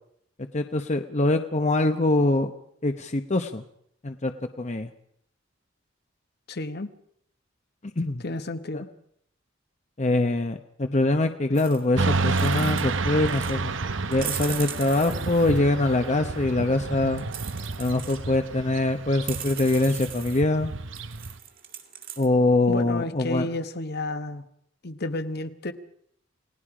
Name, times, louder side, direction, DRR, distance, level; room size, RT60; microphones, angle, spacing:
voice 1, 0.5-2.5 2.8-3.6 4.0-4.9 8.0-8.2 8.7-8.8 10.0-13.8 14.1-17.2 17.8-20.7 22.2-23.5, left 2 dB, 35° left, 7 dB, 0.9 m, -24 dB
voice 2, 6.5-6.9 8.2-8.9 22.7-24.5 24.8-25.7, left 2 dB, 55° left, 10 dB, 1.2 m, -31 dB
sound 1, 11.5-11.8 12.2-13.0 13.3-13.5 14.1-15.9 17.2-18.4 18.9-19.0 19.3-20.4 20.9-22.3, right 9 dB, 45° right, 2.2 m, -38 dB
Motorcycle / Traffic noise roadway noise, 12.0-21.4, right 3 dB, 70° right, 1.0 m, -30 dB
29.0 x 18.0 x 5.0 m, 0.68 s
head